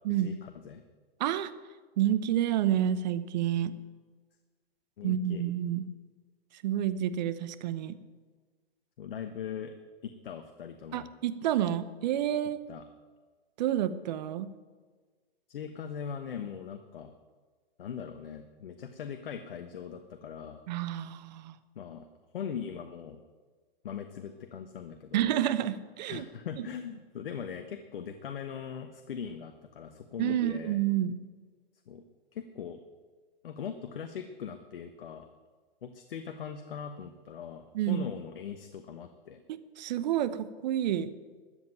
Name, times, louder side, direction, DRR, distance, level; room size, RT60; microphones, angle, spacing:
voice 1, 0.1-0.8 5.0-5.4 9.0-9.7 10.0-11.1 12.7-12.8 15.5-17.1 17.8-20.6 21.8-22.1 22.3-23.2 23.8-25.3 26.1-30.8 31.9-32.0 32.3-32.8 33.4-35.3 35.8-39.4, left 7 dB, 65° left, 7 dB, 1.2 m, -40 dB
voice 2, 1.2-1.5 2.0-3.7 5.0-5.9 6.6-8.0 10.9-12.6 13.6-14.5 20.7-21.5 25.1-26.3 26.6-26.7 30.2-31.2 37.7-38.1 39.5-41.1, right 11 dB, 45° right, 14 dB, 1.0 m, -29 dB
13.5 x 8.2 x 9.0 m, 1.4 s
hypercardioid pair, 135°, 30 cm